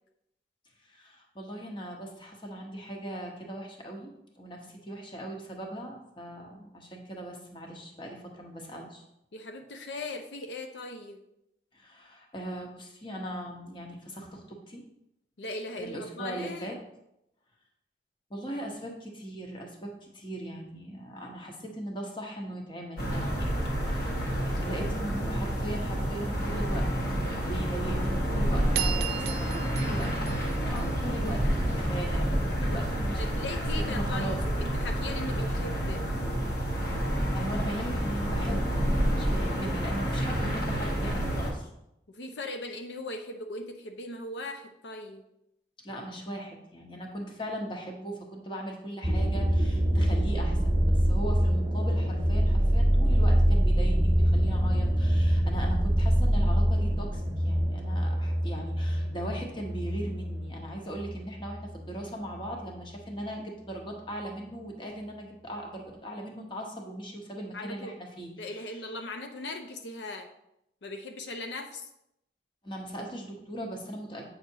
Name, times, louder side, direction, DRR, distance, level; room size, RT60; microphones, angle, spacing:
voice 1, 0.8-9.0 11.7-14.8 15.8-16.8 18.3-23.5 23.8-24.2 24.4-26.8 27.3-33.2 33.5-34.4 37.0-38.8 39.1-41.7 45.8-68.8 72.6-74.3, right 1 dB, 25° left, 1 dB, 1.1 m, -39 dB
voice 2, 9.3-11.2 15.4-16.8 33.2-36.0 42.1-45.2 67.5-68.0 68.4-70.3 70.8-71.9, left 2 dB, 80° left, 5 dB, 0.6 m, -39 dB
sound 1, 23.0-41.5, equal, 55° left, 1.4 m, -29 dB
sound 2, 28.7-31.3, right 12 dB, 60° right, 0.5 m, -35 dB
sound 3, 49.0-62.1 62.4-63.0, equal, 20° right, 1.2 m, -25 dB
8.3 x 5.7 x 2.8 m, 0.82 s
head